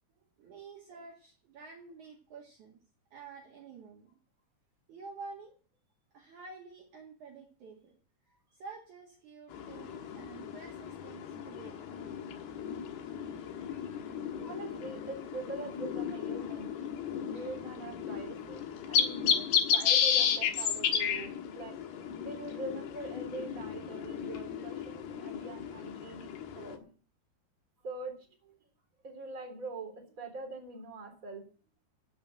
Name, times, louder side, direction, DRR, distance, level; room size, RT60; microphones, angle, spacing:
voice 1, 0.4-2.8 3.1-4.1 4.9-5.5 6.1-7.9 8.5-11.9 13.3-14.2 17.3-17.6, right 4 dB, 55° right, -1 dB, 3.2 m, -50 dB
sound 1, 9.5-26.8, left 8 dB, 75° left, 3.3 m, -33 dB
voice 2, 14.4-16.7 17.3-21.8 22.2-26.3 26.5-26.9 27.8-28.1 28.4-28.6 29.0-31.4, right 3 dB, 20° right, 1 dB, 3.5 m, -43 dB
14.5 x 6.0 x 8.8 m, 0.40 s
omnidirectional pair, 4.7 m